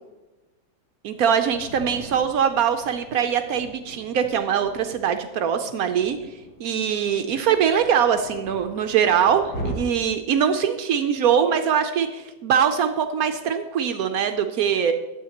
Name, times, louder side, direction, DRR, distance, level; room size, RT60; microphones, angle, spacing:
voice 1, 1.0-6.2 6.6-14.9, right 8 dB, 70° right, 7 dB, 0.9 m, -22 dB
Thunder, 1.1-9.8, right 1 dB, 75° left, 2.1 m, -41 dB
12.0 x 7.9 x 2.9 m, 1.1 s
omnidirectional pair, 1.9 m